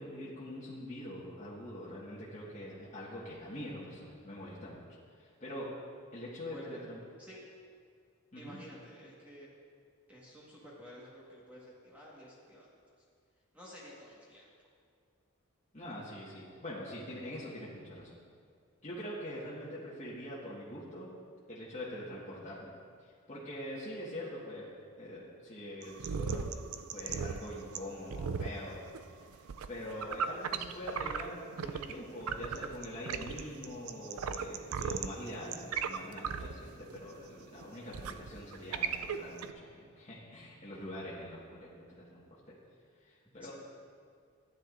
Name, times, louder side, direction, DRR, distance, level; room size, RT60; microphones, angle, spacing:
voice 1, 0.0-4.8 5.2-5.7 6.1-7.0 8.3-8.6 15.7-18.2 18.8-21.1 21.5-22.7 23.0-24.7 25.0-26.6 26.9-28.8 29.2-29.4 29.7-41.7 42.0-42.6 43.0-43.5, left 1 dB, 35° left, -8 dB, 1.6 m, -44 dB
voice 2, 6.5-6.8 7.2-7.4 8.3-9.5 10.1-12.7 13.5-14.5 43.4-43.5, equal, 5° right, -7 dB, 1.5 m, -51 dB
sound 1, 25.8-31.9 32.2-39.5, right 6 dB, 85° right, 0.4 m, -37 dB
15.0 x 10.0 x 2.6 m, 2.2 s
head